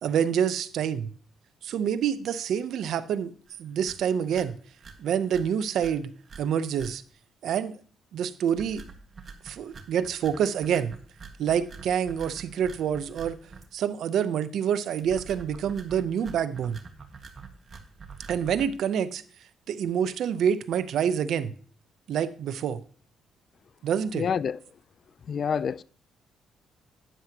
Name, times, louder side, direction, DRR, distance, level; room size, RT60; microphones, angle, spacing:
voice 1, 0.0-1.1 1.6-3.3 3.6-4.5 5.0-6.1 6.4-7.0 7.4-7.8 8.1-8.8 9.4-10.9 11.4-13.4 13.7-16.8 18.3-19.2 19.7-21.5 22.1-22.8 23.8-24.3, right 8 dB, 70° right, 0.7 m, -27 dB
sound 1, 3.5-3.6 3.8-4.0 4.3-4.5 4.8-4.9 5.3-5.4 5.8-5.9 6.2-6.4 6.7-6.9 8.5-13.6 15.0-18.7, right 4 dB, 40° right, 1.7 m, -45 dB
voice 2, 24.1-24.6 25.3-25.8, left 7 dB, 50° left, 0.4 m, -27 dB
12.0 x 9.4 x 2.9 m
cardioid pair, 90°, 0 cm